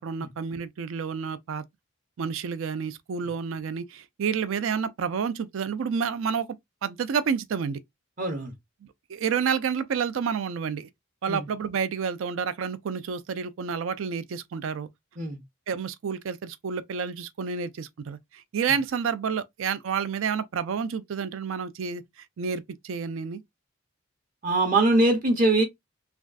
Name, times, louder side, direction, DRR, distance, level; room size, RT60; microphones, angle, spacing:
voice 1, 0.0-1.6 2.2-6.5 6.8-7.8 8.8-10.9 11.2-14.9 15.7-23.4, right 6 dB, 75° right, 0.4 m, -29 dB
voice 2, 8.2-8.5 11.3-11.4 15.2-15.4 24.4-25.6, right 2 dB, 40° right, 0.7 m, -22 dB
3.4 x 2.3 x 2.4 m
head